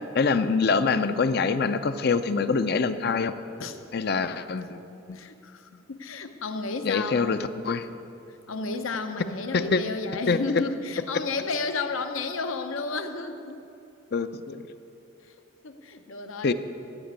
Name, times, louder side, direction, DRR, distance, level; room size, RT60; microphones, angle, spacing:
voice 1, 0.1-3.3 3.9-4.8 5.1-5.2 6.8-7.4 7.6-7.9 9.5-9.8 10.3-10.4 14.1-14.6 16.4-16.5, left 4 dB, 50° left, 11 dB, 0.5 m, -24 dB
voice 2, 5.1-7.6 8.5-13.6 15.2-16.5, left 3 dB, 80° left, 7 dB, 0.8 m, -32 dB
15.0 x 6.0 x 8.8 m, 2.8 s
head